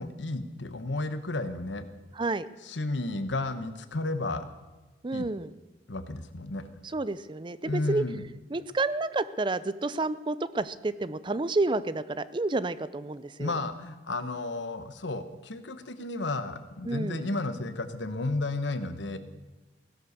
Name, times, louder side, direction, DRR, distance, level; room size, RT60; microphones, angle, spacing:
voice 1, 0.0-1.8 2.6-4.5 5.1-5.3 5.9-6.6 7.6-8.2 13.4-19.2, left 2 dB, 90° left, 11 dB, 1.2 m, -32 dB
voice 2, 2.1-2.5 5.0-5.5 6.8-8.0 8.5-13.6 16.8-17.2, right 2 dB, 25° right, 15 dB, 0.5 m, -30 dB
16.5 x 11.5 x 6.7 m, 1.2 s
head